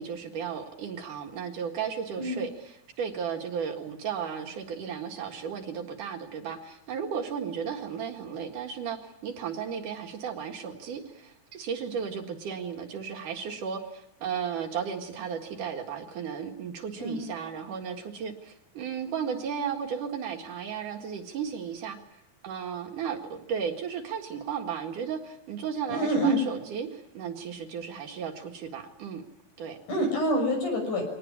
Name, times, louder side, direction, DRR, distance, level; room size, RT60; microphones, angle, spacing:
voice 1, 0.0-22.0 22.4-29.2 29.6-29.8, right 7 dB, 65° right, 3 dB, 3.3 m, -34 dB
voice 2, 25.9-26.4 29.9-31.0, right 1 dB, 60° left, 3 dB, 7.9 m, -26 dB
24.0 x 19.0 x 9.8 m, 0.88 s
omnidirectional pair, 4.1 m